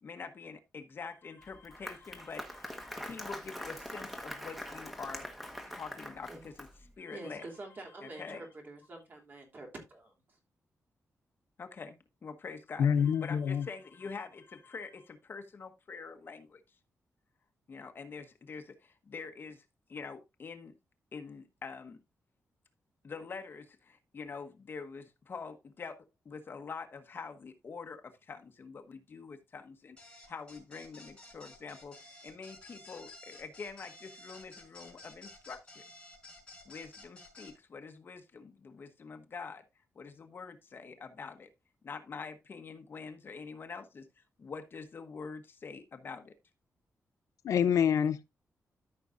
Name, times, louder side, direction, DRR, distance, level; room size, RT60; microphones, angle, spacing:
voice 1, 0.0-5.3 5.7-6.7 7.0-7.5 8.0-8.4 11.6-12.0 12.2-16.6 17.7-20.7 21.1-22.0 23.0-31.9 32.2-35.8 36.6-39.6 39.9-41.5 41.8-46.3, left 5 dB, 40° left, 1.1 m, -45 dB
Applause, 1.4-6.9, equal, ahead, 1.3 m, -43 dB
voice 2, 7.1-10.4, right 2 dB, 40° right, 3.2 m, -47 dB
voice 3, 12.8-13.6 47.4-48.2, left 8 dB, 85° left, 0.7 m, -26 dB
sound 1, 30.0-37.5, left 2 dB, 15° left, 4.7 m, -53 dB
13.5 x 6.1 x 2.6 m
wide cardioid pair, 165°, 5 cm